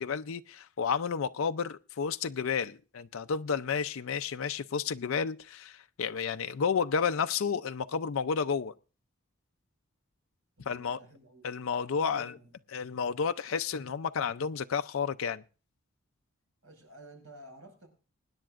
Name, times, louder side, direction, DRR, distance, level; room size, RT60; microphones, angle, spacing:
voice 1, 0.0-8.7 10.7-11.0 11.4-12.3 12.7-15.4, left 6 dB, 70° left, 0.5 m, -31 dB
voice 2, 10.6-11.6 12.0-12.5 16.6-17.9, right 1 dB, 80° right, 5.4 m, -52 dB
24.5 x 10.0 x 2.5 m
head